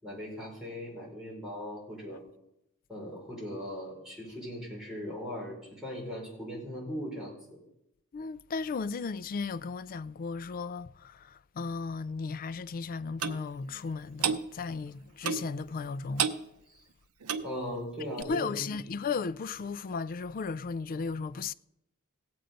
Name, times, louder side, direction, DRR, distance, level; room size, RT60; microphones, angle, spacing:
voice 1, 0.0-2.2 2.9-7.6 16.7-16.8 17.4-18.7, equal, 5° right, 4.7 m, -39 dB
voice 2, 8.1-16.3 18.3-21.5, left 4 dB, 40° left, 0.4 m, -35 dB
Clock, 13.2-13.4 14.2-14.4 15.2-15.5 16.2-16.4 17.2-17.5 18.2-18.3, right 7 dB, 80° right, 0.7 m, -30 dB
17.5 x 7.8 x 5.1 m
head